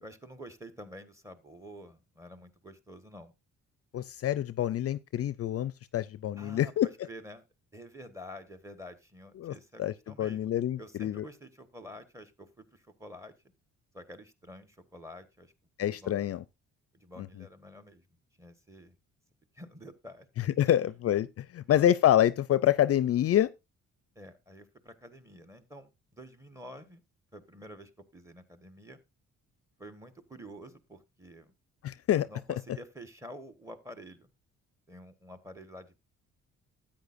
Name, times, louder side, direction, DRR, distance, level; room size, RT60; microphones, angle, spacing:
voice 1, 0.0-3.3 6.4-7.4 7.7-10.5 10.8-13.3 13.9-15.5 15.9-16.4 16.9-18.1 18.4-19.0 19.5-20.3 20.6-20.7 21.6-21.9 24.1-27.0 27.3-29.0 29.8-31.5 32.3-34.3 34.9-36.0, equal, 10° right, 1.4 m, -49 dB
voice 2, 3.9-6.9 9.4-9.5 9.8-9.9 10.2-11.2 15.8-16.4 17.2-17.3 20.6-23.5 31.8-32.3, left 11 dB, 50° left, 0.5 m, -26 dB
13.0 x 8.8 x 2.6 m
cardioid pair, 90°, 30 cm